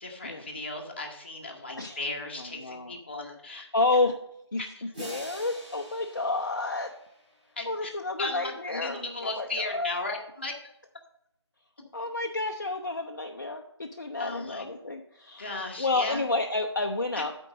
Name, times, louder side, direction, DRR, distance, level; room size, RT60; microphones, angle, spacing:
voice 1, 0.0-3.7 4.6-4.8 7.6-7.9 8.2-10.5 14.2-14.7 15.4-16.2, left 2 dB, 25° left, 1 dB, 0.9 m, -36 dB
voice 2, 2.4-2.9 3.5-4.2 4.5-4.6 5.0-6.9 7.7-9.9 11.9-17.3, left 3 dB, 40° left, 3 dB, 0.5 m, -30 dB
sound 1, 4.9-7.8, equal, 20° right, 3.1 m, -45 dB
8.0 x 4.5 x 6.3 m, 0.80 s
figure-of-eight pair, 170°, 15 cm